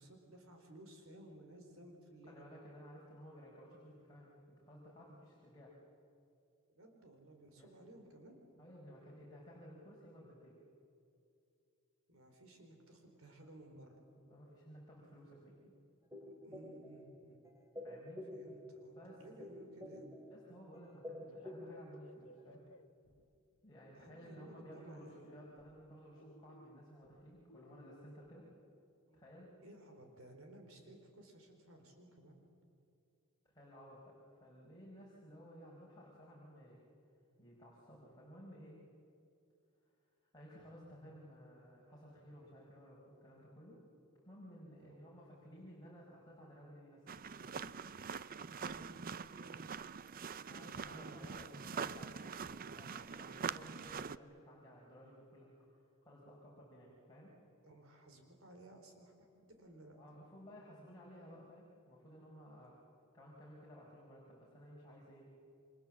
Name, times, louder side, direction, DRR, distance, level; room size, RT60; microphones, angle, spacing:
voice 1, 0.0-2.5 6.7-8.4 12.1-14.0 16.2-17.4 18.3-20.1 23.9-25.1 29.1-29.2 29.6-32.4 44.8-45.0 48.6-49.7 50.6-51.6 57.6-60.0, right 1 dB, 70° right, 4 dB, 4.3 m, -57 dB
voice 2, 2.3-5.7 7.6-7.7 8.6-10.6 14.2-15.5 17.8-18.2 18.9-19.2 20.3-22.6 23.6-28.5 29.1-29.5 33.4-36.8 37.4-38.8 40.3-43.8 44.2-47.1 47.4-47.7 50.5-57.3 60.0-62.7 63.1-65.3, equal, 20° left, -5 dB, 5.0 m, -56 dB
sound 1, 16.1-17.2 17.4-18.8 19.1-20.5 20.7-22.1 22.4-22.5, left 1 dB, 15° right, 2.7 m, -49 dB
sound 2, 21.3-23.6 24.1-24.6 25.2-28.3, left 2 dB, 65° left, 1.1 m, -62 dB
sound 3, 47.1-54.2, right 6 dB, 40° right, 0.5 m, -44 dB
29.0 x 24.5 x 7.5 m, 2.6 s
head